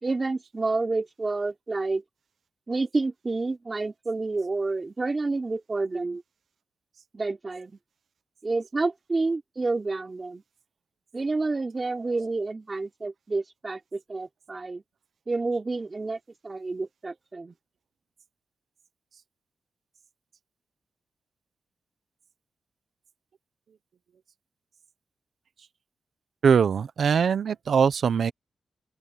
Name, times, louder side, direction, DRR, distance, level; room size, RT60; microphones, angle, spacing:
voice 1, 0.0-2.0 2.7-6.2 7.1-7.8 8.4-10.4 11.1-14.8 15.3-16.2 16.4-17.6, right 3 dB, 25° right, 3.7 m, -29 dB
voice 2, 26.4-28.3, right 6 dB, 65° right, 0.7 m, -22 dB
open air
wide cardioid pair, 130°, 0 cm